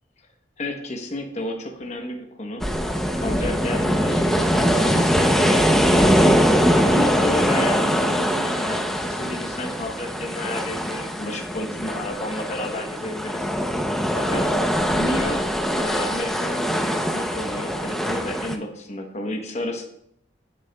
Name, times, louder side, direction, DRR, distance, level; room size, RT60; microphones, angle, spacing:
voice 1, 0.6-2.7 3.1-6.1 6.7-13.5 14.1-14.6 15.0-15.4 15.7-19.8, left 1 dB, 40° left, 3 dB, 1.0 m, -31 dB
sound 1, 2.6-18.6, equal, ahead, 0.6 m, -22 dB
15.5 x 6.6 x 2.3 m, 0.76 s
head